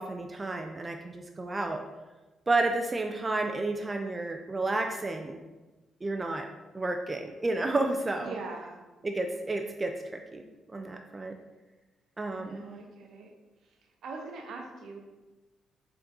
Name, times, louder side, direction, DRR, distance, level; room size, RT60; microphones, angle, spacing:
voice 1, 0.0-1.8 2.5-5.4 6.0-6.5 6.7-8.3 9.0-11.3 12.2-12.6, right 2 dB, 25° right, 4 dB, 0.3 m, -31 dB
voice 2, 8.2-8.8 12.4-13.3 14.0-15.0, right 3 dB, 70° right, 2 dB, 0.7 m, -41 dB
4.5 x 3.7 x 2.6 m, 1.2 s
cardioid pair, 90°, 0 cm